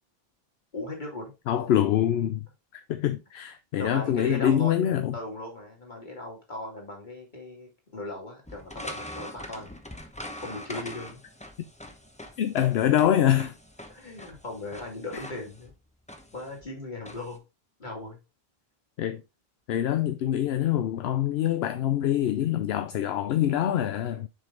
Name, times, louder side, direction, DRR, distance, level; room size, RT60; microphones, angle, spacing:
voice 1, 0.7-1.3 3.8-4.7 5.1-9.8 10.4-11.2 13.9-15.7 16.3-17.4 17.8-18.2, left 2 dB, 50° left, 2.6 m, -38 dB
voice 2, 1.5-2.4 2.7-5.2 12.4-13.5 19.0-19.2 19.7-24.3, left 11 dB, 80° left, 0.8 m, -25 dB
sound 1, 8.5-17.4, left 1 dB, 5° left, 0.8 m, -43 dB
6.2 x 5.2 x 3.8 m
omnidirectional pair, 1.0 m